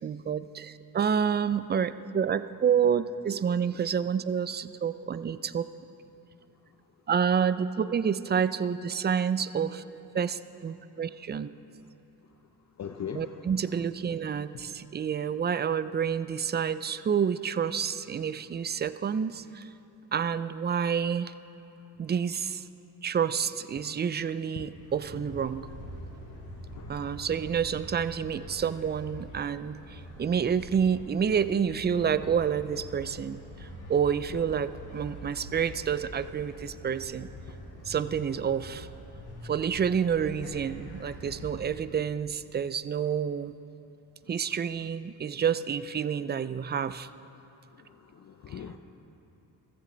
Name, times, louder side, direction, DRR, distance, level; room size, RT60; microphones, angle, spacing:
voice 1, 0.0-5.7 7.1-9.8 10.1-11.5 13.1-19.7 20.1-21.3 22.0-22.6 23.0-25.7 26.9-33.4 33.9-37.3 37.9-38.9 39.4-43.5 44.3-47.1, right 7 dB, 25° right, 14 dB, 0.4 m, -29 dB
voice 2, 12.8-13.4 24.6-24.7 26.8-27.3 47.9-48.8, left 7 dB, 45° left, 5 dB, 0.6 m, -40 dB
sound 1, 24.7-41.6, left 1 dB, 80° left, 2.9 m, -45 dB
14.5 x 14.0 x 3.9 m, 2.9 s
cardioid pair, 75°, 38 cm